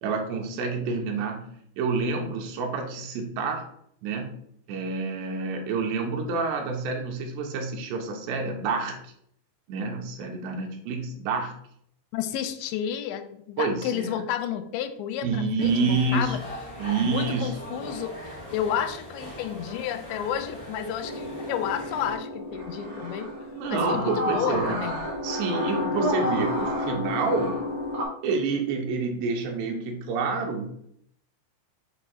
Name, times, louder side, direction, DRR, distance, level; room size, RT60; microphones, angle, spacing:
voice 1, 0.0-3.7 4.0-4.3 4.7-9.1 9.7-11.5 13.6-14.2 15.2-16.4 16.8-17.9 23.5-24.8 25.2-27.7 28.2-30.7, right 4 dB, 80° right, 2 dB, 2.8 m, -28 dB
voice 2, 12.1-16.4 17.0-23.3 23.7-25.1, left 9 dB, 85° left, 9 dB, 2.8 m, -31 dB
sound 1, 15.6-22.2, equal, 40° left, 0.5 m, -40 dB
sound 2, 21.0-28.0, left 1 dB, 65° right, 1.1 m, -30 dB
7.4 x 2.6 x 5.0 m, 0.69 s
omnidirectional pair, 5.1 m